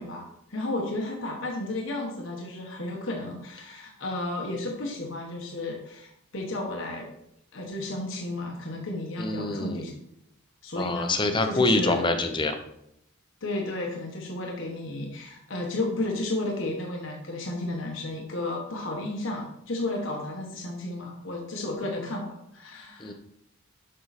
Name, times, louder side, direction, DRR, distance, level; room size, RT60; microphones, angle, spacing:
voice 1, 0.0-7.1 7.5-9.9 10.6-12.1 13.4-23.1, left 2 dB, 65° left, 0 dB, 1.3 m, -33 dB
voice 2, 9.2-9.8 10.7-12.6 23.0-23.1, left 2 dB, 25° left, 7 dB, 0.8 m, -25 dB
7.8 x 5.6 x 4.2 m, 0.77 s
head